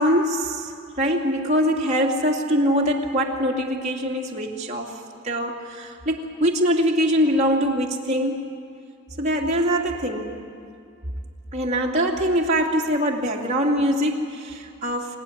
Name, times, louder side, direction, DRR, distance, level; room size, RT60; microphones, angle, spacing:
voice 1, 0.0-8.4 9.2-10.3 11.5-15.2, equal, 35° right, -2 dB, 2.7 m, -23 dB
26.5 x 15.5 x 10.0 m, 2.4 s
head